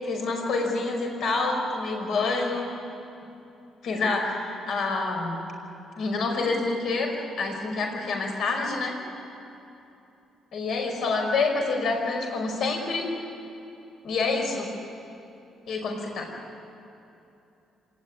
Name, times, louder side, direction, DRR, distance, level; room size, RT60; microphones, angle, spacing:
voice 1, 0.0-2.7 3.8-5.4 6.0-9.0 10.5-13.1 14.0-14.7 15.7-16.3, left 3 dB, 60° left, 2 dB, 5.2 m, -27 dB
26.0 x 19.0 x 9.9 m, 2.8 s
cardioid pair, 135°, 0 cm